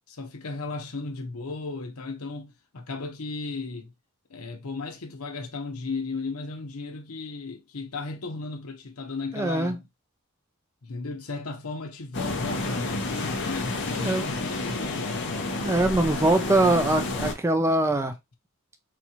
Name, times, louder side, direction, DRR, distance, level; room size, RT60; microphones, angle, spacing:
voice 1, 0.1-3.9 4.3-9.8 10.8-15.4, left 3 dB, 90° left, 0.9 m, -35 dB
voice 2, 9.3-9.8 13.9-14.2 15.6-18.1, right 2 dB, 10° right, 0.3 m, -23 dB
sound 1, 12.1-17.3, left 2 dB, 55° left, 0.8 m, -30 dB
4.1 x 2.3 x 2.9 m
head